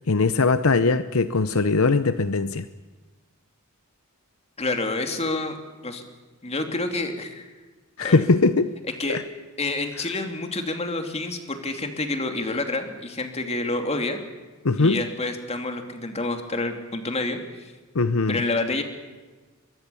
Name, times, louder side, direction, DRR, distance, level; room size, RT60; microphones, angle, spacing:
voice 1, 0.1-2.7 8.0-8.7 9.1-9.2 14.6-15.0 17.9-18.4, left 3 dB, 70° left, 12 dB, 0.8 m, -20 dB
voice 2, 4.6-5.6 5.8-6.0 6.4-7.5 8.0-8.2 9.0-9.2 9.6-14.2 14.8-17.4 18.3-18.8, left 2 dB, 30° left, 5 dB, 2.9 m, -28 dB
23.0 x 23.0 x 7.1 m, 1.3 s
head